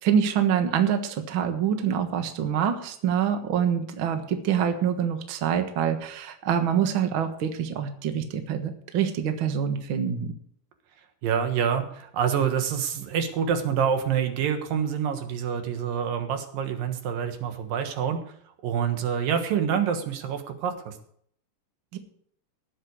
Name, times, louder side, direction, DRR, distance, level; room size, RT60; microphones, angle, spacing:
voice 1, 0.0-10.3 21.9-22.0, right 8 dB, 50° right, 6 dB, 1.7 m, -25 dB
voice 2, 11.2-18.2 18.6-21.0, right 7 dB, 85° right, 6 dB, 3.1 m, -27 dB
19.0 x 7.9 x 4.8 m, 0.64 s
omnidirectional pair, 3.9 m